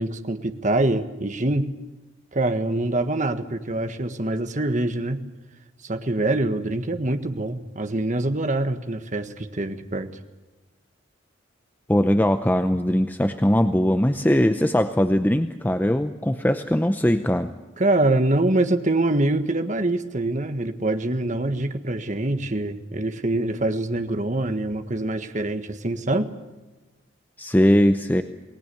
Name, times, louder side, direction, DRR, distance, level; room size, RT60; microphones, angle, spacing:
voice 1, 0.0-1.7 2.3-5.2 5.8-10.1 17.8-26.3, right 2 dB, 40° right, 8 dB, 1.6 m, -24 dB
voice 2, 11.9-17.5 27.4-28.2, equal, 10° left, 9 dB, 0.7 m, -20 dB
29.0 x 19.5 x 7.0 m, 1.2 s
head